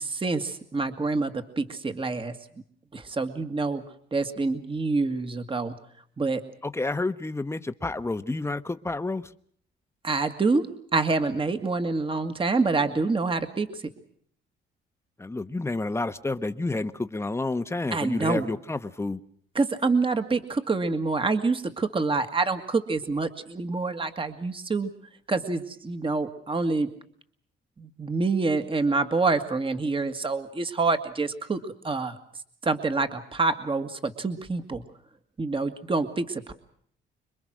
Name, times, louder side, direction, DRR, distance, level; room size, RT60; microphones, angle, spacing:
voice 1, 0.0-2.4 2.9-3.8 4.1-5.8 6.2-6.4 10.0-13.8 17.9-18.5 19.6-24.9 25.3-26.9 27.8-32.2 32.6-34.8 35.4-36.5, right 3 dB, 25° right, 2.0 m, -27 dB
voice 2, 6.6-9.3 15.2-19.2, left 2 dB, 15° left, 1.1 m, -30 dB
26.5 x 22.5 x 6.4 m
cardioid pair, 90°, 20 cm